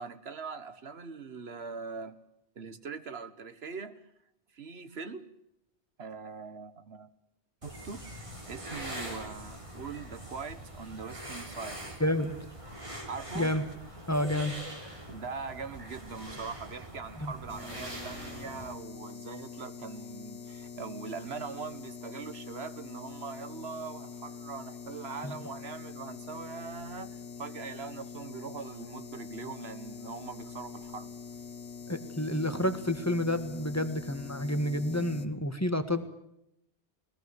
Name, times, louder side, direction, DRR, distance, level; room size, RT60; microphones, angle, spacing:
voice 1, 0.0-2.2 2.5-4.0 4.5-5.3 6.0-7.1 7.6-11.8 13.1-13.5 15.1-31.1, right 5 dB, 65° right, 13 dB, 1.5 m, -42 dB
sound 1, 7.6-18.7, equal, 30° right, 3.6 m, -43 dB
voice 2, 12.0-12.3 13.3-13.6 14.1-14.6 17.2-17.3 25.2-25.4 31.9-36.1, left 1 dB, 15° left, 10 dB, 1.5 m, -29 dB
sound 2, 17.5-35.3, left 6 dB, 75° left, 1.6 m, -44 dB
20.0 x 20.0 x 8.0 m, 0.79 s
omnidirectional pair, 1.1 m